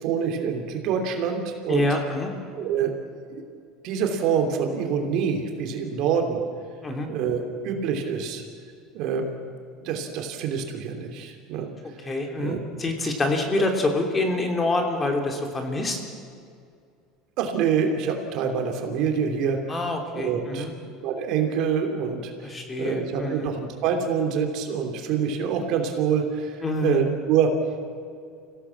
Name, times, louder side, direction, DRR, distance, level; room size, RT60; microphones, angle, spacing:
voice 1, 0.0-1.9 2.5-2.9 3.3-3.4 3.8-6.4 7.1-8.4 8.9-9.2 9.8-11.7 12.4-12.6 17.4-19.6 20.1-20.6 21.0-22.5 22.8-27.5, right 7 dB, 60° right, 4 dB, 3.2 m, -26 dB
voice 2, 1.7-2.3 6.8-7.1 12.0-16.0 19.7-20.7 22.4-23.5 26.6-27.0, left 2 dB, 20° left, 3 dB, 3.3 m, -26 dB
25.5 x 16.5 x 7.4 m, 2.3 s
supercardioid pair, 120°, 0 cm